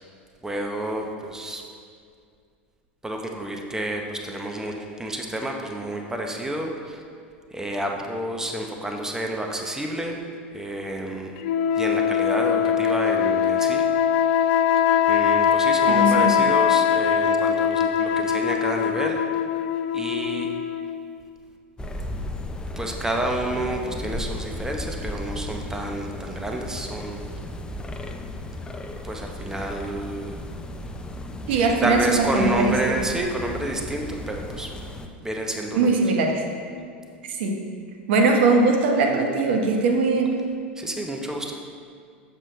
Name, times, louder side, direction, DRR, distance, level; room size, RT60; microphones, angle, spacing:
voice 1, 0.4-1.6 3.0-7.0 7.5-10.2 10.5-11.3 11.8-13.8 15.1-19.2 19.9-20.5 22.8-27.2 29.0-30.4 31.8-34.7 35.2-36.0 40.8-41.5, right 1 dB, 10° right, 2 dB, 0.9 m, -29 dB
sound 1, 11.4-21.1, left 8 dB, 65° left, 0.4 m, -22 dB
voice 2, 15.9-16.4 31.5-33.0 35.7-36.4 37.3-37.6 38.1-40.4, right 3 dB, 70° right, 2 dB, 1.1 m, -21 dB
sound 2, 21.8-35.1, left 1 dB, 15° left, 0.6 m, -35 dB
7.2 x 6.9 x 3.3 m, 2.2 s
hypercardioid pair, 90°, 6 cm